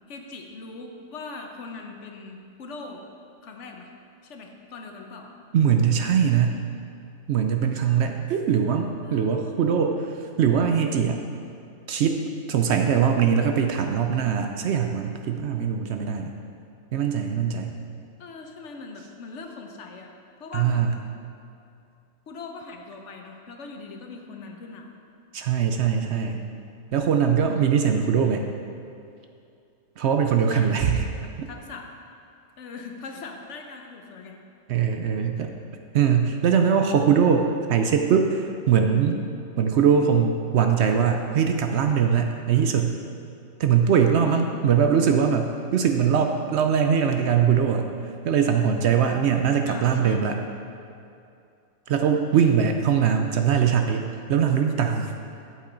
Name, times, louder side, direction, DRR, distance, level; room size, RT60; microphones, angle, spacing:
voice 1, 0.1-3.0 3.4-3.9 4.2-5.3 9.0-9.4 18.2-20.1 20.4-21.1 22.3-24.9 27.4-27.8 30.5-30.8 31.2-31.9 32.6-34.4 44.3-44.5 49.7-50.3 52.3-52.6, left 4 dB, 65° left, 3 dB, 1.1 m, -41 dB
voice 2, 5.5-6.6 7.3-10.0 10.4-11.2 11.9-12.2 12.5-16.3 16.9-17.8 20.5-20.9 25.3-26.4 26.9-28.4 30.0-31.0 31.4-31.5 34.7-35.5 35.9-39.2 39.6-42.9 43.6-47.9 48.2-50.4 51.9-55.1, right 7 dB, 65° right, 5 dB, 0.8 m, -21 dB
8.5 x 7.7 x 3.9 m, 2.5 s
omnidirectional pair, 1.3 m